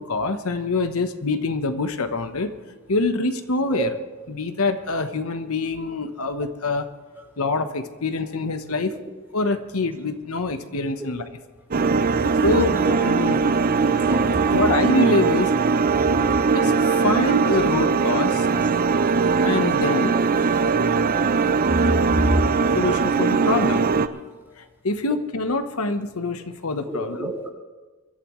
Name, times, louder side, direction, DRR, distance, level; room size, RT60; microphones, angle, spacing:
voice 1, 0.0-2.5 2.9-4.0 4.3-6.9 7.4-9.0 9.3-11.2 12.2-13.4 14.5-15.6 16.5-18.5 19.4-20.2 22.7-23.8 24.5-27.3, left 2 dB, 75° left, 9 dB, 1.1 m, -25 dB
sound 1, 11.7-24.1, right 4 dB, 40° right, 0.6 m, -20 dB
voice 2, 13.7-14.4 20.4-20.5 26.9-27.5, right 2 dB, 10° right, -1 dB, 2.3 m, -32 dB
24.0 x 12.5 x 3.2 m, 1.2 s
head